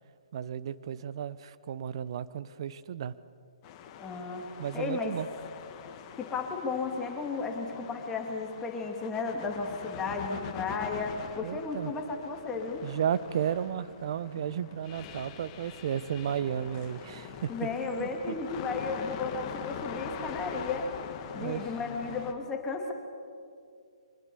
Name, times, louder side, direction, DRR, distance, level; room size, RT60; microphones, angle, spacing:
voice 1, 0.3-3.1 4.6-5.3 11.4-11.9 12.8-17.5 18.0-18.3 21.4-21.6, right 9 dB, 50° right, 16 dB, 0.9 m, -33 dB
sound 1, 3.6-22.3, left 8 dB, 30° left, 1.8 m, -43 dB
voice 2, 4.0-4.5 4.7-5.2 6.2-12.9 17.5-20.9 21.3-22.9, left 4 dB, 15° left, 2 dB, 2.6 m, -34 dB
25.0 x 20.5 x 6.9 m, 2.4 s
figure-of-eight pair, 135°, 3 cm